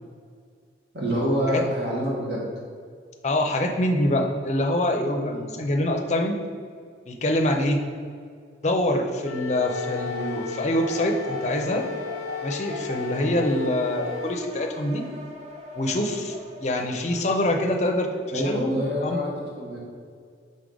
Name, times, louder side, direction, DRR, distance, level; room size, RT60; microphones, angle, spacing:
voice 1, 0.9-2.5 5.3-5.5 18.3-19.3 19.6-19.8, equal, 60° right, -5 dB, 1.5 m, -26 dB
voice 2, 3.2-6.4 7.1-7.8 8.6-11.9 12.4-15.1 15.8-19.2, left 1 dB, 35° left, 3 dB, 0.5 m, -25 dB
Wind instrument woodwind instrument, 9.2-14.4, left 9 dB, 90° left, 0.4 m, -36 dB
sound 1, 9.6-17.2, left 1 dB, 35° right, 0.6 m, -38 dB
5.4 x 4.8 x 3.9 m, 2.1 s
head